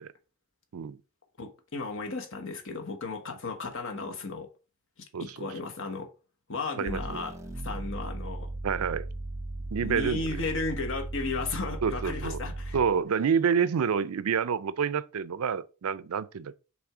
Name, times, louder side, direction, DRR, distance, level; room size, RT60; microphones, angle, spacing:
voice 1, 1.4-4.5 5.0-6.1 6.5-7.4 7.6-8.5 9.8-12.8, left 3 dB, 65° left, 1.3 m, -34 dB
voice 2, 5.1-5.5 6.8-7.2 8.6-9.1 9.7-10.4 11.8-12.4 12.7-16.6, right 6 dB, 90° right, 0.5 m, -28 dB
sound 1, 6.9-13.0, right 2 dB, 15° right, 0.8 m, -37 dB
6.0 x 3.6 x 4.8 m
head